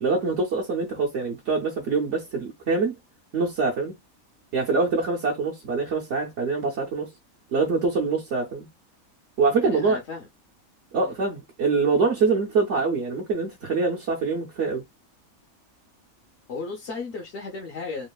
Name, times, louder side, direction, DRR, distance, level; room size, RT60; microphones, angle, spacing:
voice 1, 0.0-2.9 3.3-3.9 4.5-7.1 7.5-8.7 9.4-10.0 10.9-14.8, right 4 dB, 60° right, 0.9 m, -24 dB
voice 2, 9.6-10.3 11.0-11.1 16.5-18.1, left 4 dB, 60° left, 0.9 m, -35 dB
3.0 x 2.4 x 2.2 m
omnidirectional pair, 1.5 m